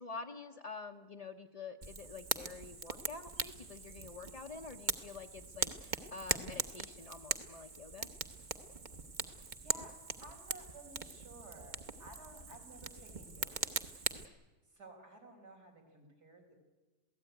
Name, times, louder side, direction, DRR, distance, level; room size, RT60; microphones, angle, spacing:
voice 1, 0.0-8.1, left 4 dB, 30° left, 2 dB, 0.7 m, -48 dB
Fire, 1.8-14.2, right 4 dB, 35° right, 1.1 m, -41 dB
voice 2, 9.6-9.9 10.2-13.9 14.7-16.5, right 2 dB, 85° right, 1 dB, 5.5 m, -55 dB
27.0 x 17.0 x 9.3 m, 1.2 s
omnidirectional pair, 1.7 m